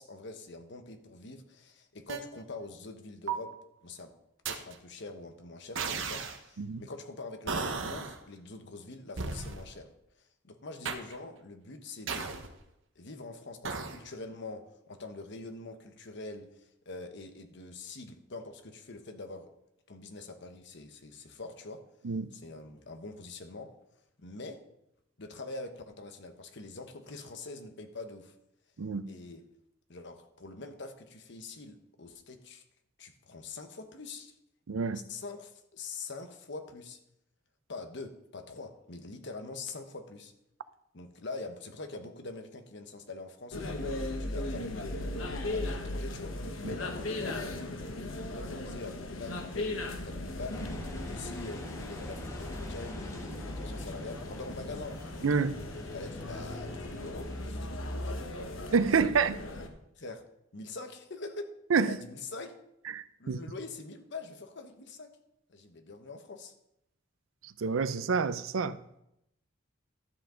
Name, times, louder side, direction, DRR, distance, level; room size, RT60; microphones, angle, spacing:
voice 1, 0.0-3.5 3.8-4.1 4.5-9.9 10.4-12.3 12.9-19.5 19.9-21.8 22.3-23.7 24.2-24.6 25.2-28.3 29.1-29.4 29.9-32.6 33.0-34.3 35.1-37.0 37.7-40.3 40.9-43.9 44.2-45.1 45.5-47.4 47.9-50.6 51.1-55.0 55.9-57.7 58.0-58.3 58.8-59.1 60.0-60.2 60.5-61.5 61.9-62.5 63.2-65.1 65.5-66.5, left 3 dB, 60° left, 1.1 m, -44 dB
sound 1, 2.1-2.2 3.3-3.6 4.4-4.7 5.7-6.4 7.5-8.2 9.2-9.7 10.8-11.2 12.1-12.6 13.6-14.0, right 5 dB, 70° right, 1.0 m, -34 dB
voice 2, 34.7-35.0 46.6-46.7 55.2-55.6 58.7-59.3 61.7-61.9 62.9-63.4 67.6-68.8, right 5 dB, 90° right, 0.5 m, -28 dB
sound 2, 43.5-59.7, left 2 dB, 85° left, 1.2 m, -37 dB
Engine, 50.5-57.5, left 1 dB, 15° left, 1.2 m, -45 dB
12.5 x 7.8 x 3.8 m
head